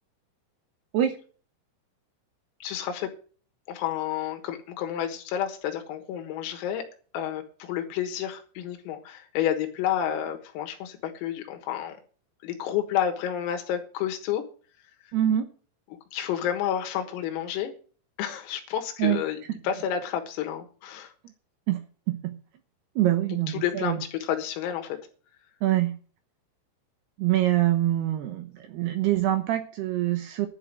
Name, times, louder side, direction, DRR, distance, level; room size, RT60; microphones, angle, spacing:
voice 1, 2.6-3.1 3.7-6.9 7.1-12.0 12.4-14.4 15.1-15.2 16.1-17.7 18.2-19.4 19.6-21.1 23.5-25.0, left 10 dB, 85° left, 5 dB, 4.1 m, -30 dB
voice 2, 15.1-15.5 19.0-19.2 21.7-21.8 22.1-22.3 23.0-24.0 25.6-25.9 27.2-30.5, right 13 dB, 75° right, 7 dB, 2.4 m, -25 dB
11.5 x 6.0 x 9.1 m, 0.41 s
omnidirectional pair, 5.9 m